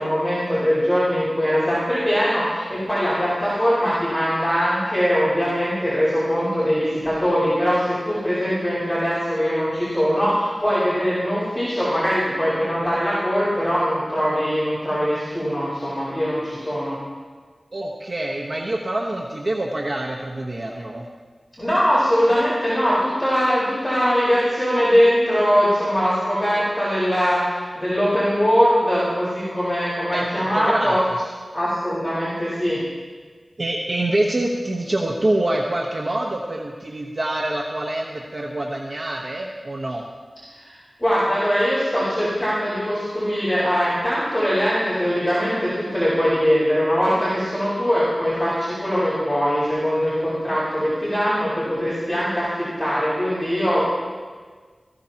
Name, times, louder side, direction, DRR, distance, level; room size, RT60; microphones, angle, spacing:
voice 1, 0.0-17.0 21.6-31.0 31.5-32.8 40.6-53.9, equal, 10° left, -10 dB, 4.5 m, -21 dB
voice 2, 17.7-21.1 30.1-31.3 33.6-40.0, right 1 dB, 50° right, -2 dB, 1.1 m, -26 dB
17.5 x 15.5 x 2.9 m, 1.5 s
wide cardioid pair, 85°, 0 cm